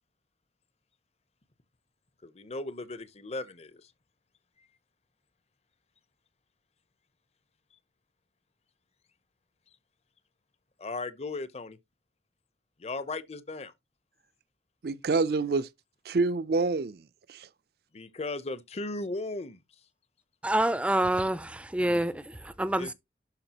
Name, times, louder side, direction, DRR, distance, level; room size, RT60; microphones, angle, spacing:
voice 1, 2.2-3.9 10.8-11.8 12.8-13.7 17.9-19.6 22.8-22.9, left 2 dB, 35° left, 0.7 m, -36 dB
voice 2, 14.8-15.7 16.1-17.0 17.3-17.5, right 3 dB, 60° right, 0.5 m, -27 dB
voice 3, 20.4-22.9, right 1 dB, 5° right, 0.4 m, -27 dB
11.5 x 4.8 x 2.9 m
head